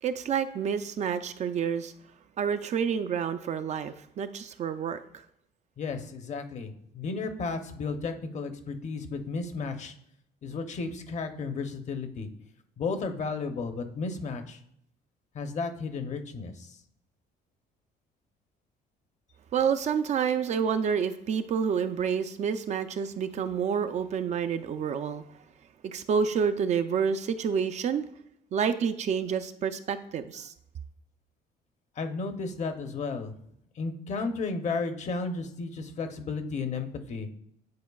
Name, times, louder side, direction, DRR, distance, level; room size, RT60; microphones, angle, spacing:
voice 1, 0.0-1.9 2.4-5.2 19.5-25.2 25.8-28.1 28.5-30.5, right 7 dB, 45° right, 10 dB, 0.4 m, -28 dB
voice 2, 5.8-9.9 10.4-12.3 12.8-14.6 15.3-16.8 32.0-33.3 33.8-37.3, left 4 dB, 45° left, 7 dB, 0.7 m, -33 dB
9.4 x 4.4 x 2.3 m, 0.71 s
cardioid pair, 110°, 17 cm